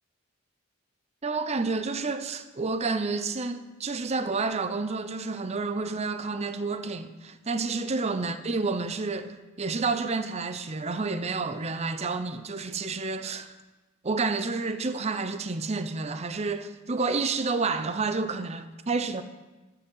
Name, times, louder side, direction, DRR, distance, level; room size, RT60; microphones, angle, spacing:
voice 1, 1.2-13.6 14.0-19.2, right 4 dB, 30° right, 0.6 m, -30 dB
11.0 x 9.6 x 7.8 m
head